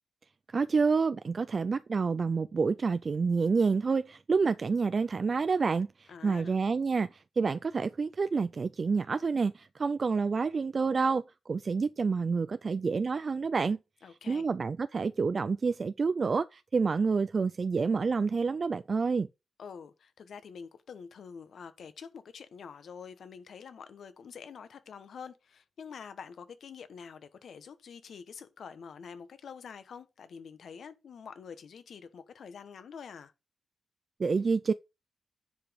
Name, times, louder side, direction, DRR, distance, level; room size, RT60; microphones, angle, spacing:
voice 1, 0.5-13.8 14.3-19.3 34.2-34.7, right 4 dB, 35° right, 0.4 m, -28 dB
voice 2, 6.1-6.5 14.0-14.5 19.6-33.3, left 6 dB, 65° left, 1.2 m, -47 dB
9.9 x 5.1 x 5.2 m
wide cardioid pair, 145°, 0 cm